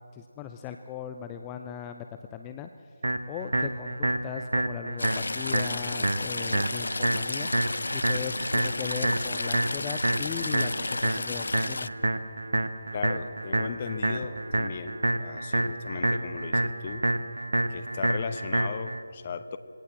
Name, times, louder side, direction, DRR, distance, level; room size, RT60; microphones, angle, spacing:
voice 1, 0.0-2.1 2.3-2.9 3.3-7.5 7.9-11.9, left 9 dB, 15° left, 7 dB, 0.6 m, -38 dB
sound 1, 3.0-19.0, right 1 dB, 65° right, 1.4 m, -28 dB
Stream / Trickle dribble, 5.0-11.9, left 3 dB, 60° left, 0.6 m, -33 dB
voice 2, 12.9-17.0 17.7-19.6, left 5 dB, 30° left, 12 dB, 0.9 m, -36 dB
20.5 x 18.0 x 7.5 m, 2.6 s
figure-of-eight pair, 155°, 0 cm